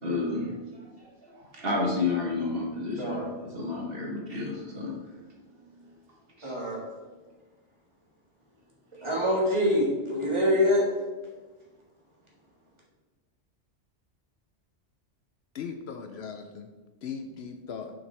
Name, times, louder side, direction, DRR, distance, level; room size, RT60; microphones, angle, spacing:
voice 1, 0.0-5.0 5.6-5.8 6.4-6.6, left 3 dB, 55° right, -2 dB, 1.5 m, -31 dB
voice 2, 3.0-3.6 6.4-6.8 9.0-10.8, left 1 dB, 25° right, -4 dB, 1.8 m, -25 dB
voice 3, 15.5-16.7 17.0-17.9, left 6 dB, 65° left, 6 dB, 0.8 m, -38 dB
6.6 x 6.0 x 3.3 m, 1.3 s
omnidirectional pair, 1.2 m